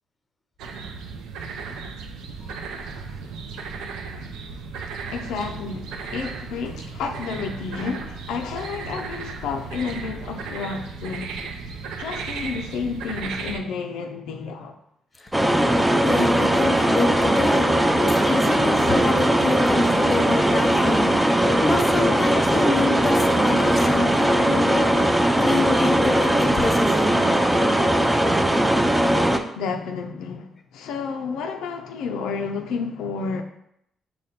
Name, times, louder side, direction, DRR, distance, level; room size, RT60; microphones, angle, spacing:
sound 1, 0.6-13.6, right 5 dB, 90° right, 0.4 m, -35 dB
voice 1, 5.1-11.5 12.0-14.7 29.6-33.4, left 5 dB, 90° left, 0.3 m, -31 dB
sound 2, 15.3-29.4, right 1 dB, 10° right, 0.4 m, -19 dB
voice 2, 16.0-17.7 18.0-21.1 21.6-25.1 25.4-27.2, left 2 dB, 25° left, 0.7 m, -26 dB
5.0 x 2.2 x 4.1 m
cardioid pair, 90°, 0 cm